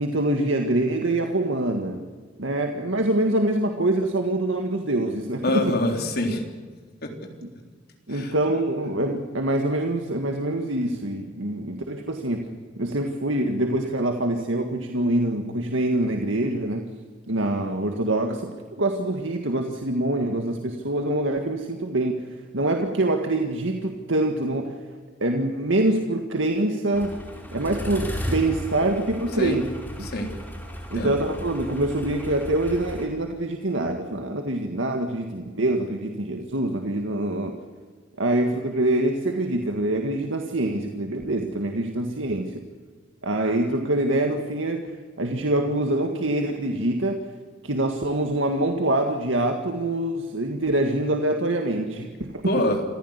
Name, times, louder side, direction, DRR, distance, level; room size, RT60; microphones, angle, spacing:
voice 1, 0.0-2.1 2.4-5.7 8.1-12.5 12.8-16.9 17.3-22.3 22.5-24.8 25.2-27.2 27.5-29.6 30.0-30.1 30.9-37.5 38.2-42.6 43.2-44.9 45.2-47.2 47.6-52.4, right 1 dB, 75° right, 4 dB, 1.9 m, -25 dB
voice 2, 5.4-6.4 7.0-7.1 8.1-8.3 29.4-29.6 30.0-30.3 30.9-31.2 52.5-52.8, left 1 dB, 55° left, 3 dB, 3.7 m, -25 dB
sound 1, 26.9-33.1, equal, 10° left, 5.1 m, -35 dB
27.5 x 15.0 x 8.2 m, 1.5 s
head